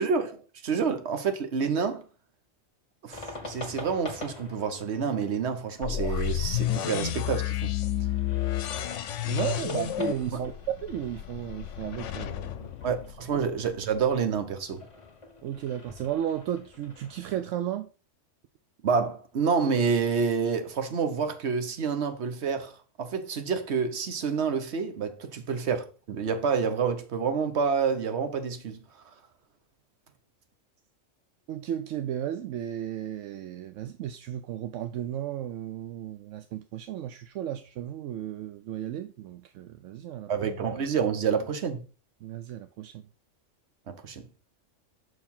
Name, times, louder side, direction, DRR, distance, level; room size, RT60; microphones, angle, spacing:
voice 1, 0.0-2.0 3.0-7.7 10.3-10.4 12.8-14.9 18.8-22.7 23.0-28.8 40.3-41.8 43.9-44.2, right 6 dB, 60° right, 1.2 m, -28 dB
sound 1, 3.1-17.4, left 2 dB, 25° left, 1.4 m, -46 dB
sound 2, 5.8-13.7, left 12 dB, 75° left, 0.9 m, -31 dB
voice 2, 9.3-10.5 10.8-12.7 15.4-17.9 31.5-40.3 42.2-43.0, right 10 dB, 80° right, 0.9 m, -34 dB
6.2 x 4.6 x 5.4 m
omnidirectional pair, 1.3 m